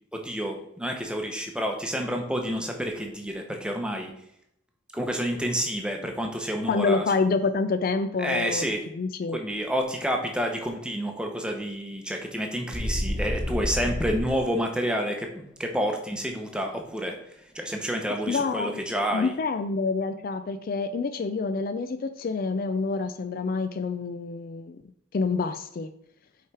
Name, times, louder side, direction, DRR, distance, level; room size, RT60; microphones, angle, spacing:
voice 1, 0.1-4.1 4.9-7.1 8.2-8.8 9.3-17.2 17.5-19.3, equal, 5° right, 3 dB, 0.8 m, -29 dB
voice 2, 6.7-8.7 9.0-9.4 18.3-18.8 19.1-24.8 25.1-25.9, left 4 dB, 45° left, 9 dB, 0.3 m, -27 dB
sound 1, 12.7-14.4, left 1 dB, 15° left, 1.4 m, -29 dB
5.7 x 4.8 x 4.7 m, 0.74 s
head